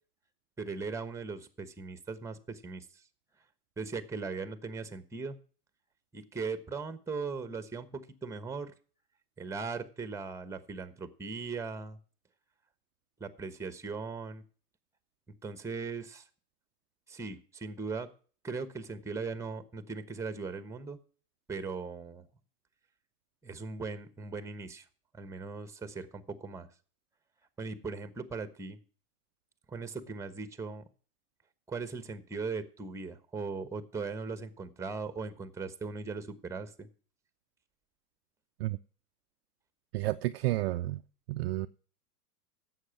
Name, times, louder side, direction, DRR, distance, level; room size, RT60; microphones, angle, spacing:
voice 1, 0.6-2.8 3.8-5.4 6.1-8.7 9.4-12.0 13.2-14.4 15.4-16.2 17.1-18.1 18.4-21.0 21.5-22.3 23.4-24.8 25.1-26.7 27.6-28.8 29.7-30.8 31.7-36.9, right 4 dB, 5° right, 1.1 m, -39 dB
voice 2, 39.9-41.0 41.3-41.7, right 17 dB, 45° right, 0.4 m, -31 dB
11.5 x 7.9 x 5.9 m
hypercardioid pair, 110°, 48 cm